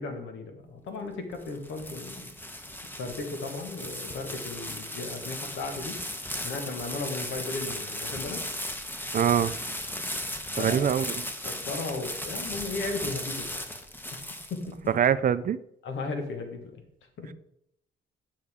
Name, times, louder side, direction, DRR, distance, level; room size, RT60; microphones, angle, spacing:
voice 1, 0.0-2.3 3.0-6.0 6.4-8.5 10.6-10.8 11.4-13.6 14.1-14.2 14.5-14.8 15.8-16.8 17.2-17.3, left 3 dB, 75° left, 5 dB, 1.6 m, -35 dB
sound 1, 1.1-14.9, left 1 dB, 10° left, 1.0 m, -36 dB
voice 2, 9.1-9.5 10.6-11.2 14.9-15.6, right 8 dB, 45° right, 14 dB, 0.5 m, -24 dB
10.5 x 5.3 x 3.6 m, 0.75 s
cardioid pair, 90°, 20 cm